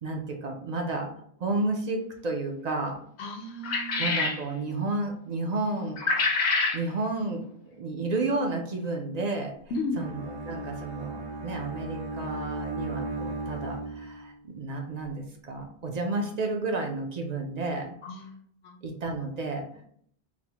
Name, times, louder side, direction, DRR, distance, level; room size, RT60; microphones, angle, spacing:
voice 1, 0.0-1.1 1.4-3.0 4.0-7.4 7.7-9.5 10.0-17.9 18.8-19.7, right 2 dB, 55° right, 2 dB, 0.5 m, -31 dB
voice 2, 3.2-4.1 9.7-10.1 18.0-18.3 18.6-18.8, left 2 dB, 80° left, 4 dB, 0.9 m, -34 dB
sound 1, 3.6-4.4 6.0-6.8, left 4 dB, 50° left, 0.6 m, -26 dB
Bowed string instrument, 9.9-14.4, right 2 dB, 85° right, 1.0 m, -36 dB
4.0 x 2.0 x 2.8 m, 0.63 s
omnidirectional pair, 1.1 m